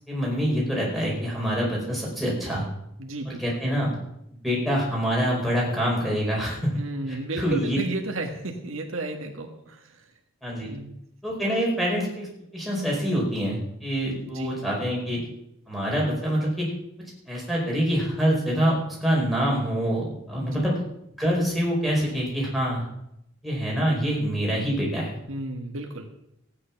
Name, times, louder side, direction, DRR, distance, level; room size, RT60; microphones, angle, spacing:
voice 1, 0.1-2.6 3.2-3.9 4.4-6.8 7.1-7.8 10.4-10.7 11.2-12.3 12.5-15.2 15.7-16.7 17.3-20.8 21.2-22.8 23.4-25.2, equal, ahead, -4 dB, 4.9 m, -25 dB
voice 2, 3.0-3.4 6.8-10.0 10.7-10.9 14.3-14.5 20.5-20.6 25.3-26.1, right 2 dB, 80° right, 3 dB, 1.7 m, -33 dB
15.5 x 9.7 x 5.9 m, 0.79 s
head